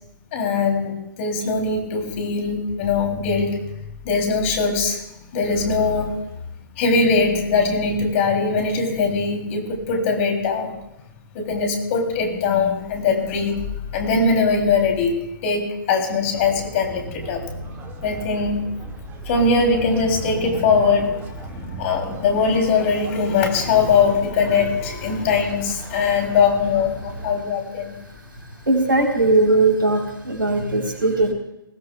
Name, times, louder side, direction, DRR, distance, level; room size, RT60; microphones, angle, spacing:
voice 1, 0.3-3.6 4.0-5.0 5.3-6.2 6.8-10.7 11.3-13.6 13.9-15.1 15.4-17.5 18.0-18.6 19.2-27.9, left 4 dB, 40° left, 3 dB, 2.9 m, -21 dB
sound 1, 16.3-27.4, right 2 dB, 20° right, 1.8 m, -35 dB
voice 2, 28.7-31.3, right 2 dB, 80° right, 2 dB, 3.5 m, -19 dB
20.5 x 16.5 x 2.3 m, 0.88 s
figure-of-eight pair, 125°, 11 cm